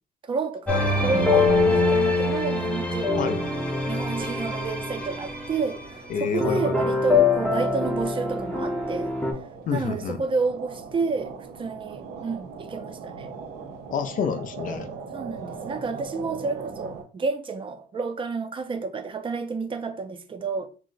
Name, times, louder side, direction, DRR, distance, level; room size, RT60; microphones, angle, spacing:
voice 1, 0.2-0.7 1.0-3.3 3.9-9.1 9.7-13.3 15.1-20.7, right 4 dB, 30° right, 0.4 m, -30 dB
sound 1, 0.7-5.9 6.4-9.3, left 3 dB, 5° left, 0.7 m, -24 dB
sound 2, 3.1-17.0, right 5 dB, 70° right, 0.7 m, -41 dB
voice 2, 6.1-6.9 9.7-10.2 13.9-14.9, left 6 dB, 50° left, 0.4 m, -28 dB
2.7 x 2.1 x 3.8 m
cardioid pair, 110°, 17 cm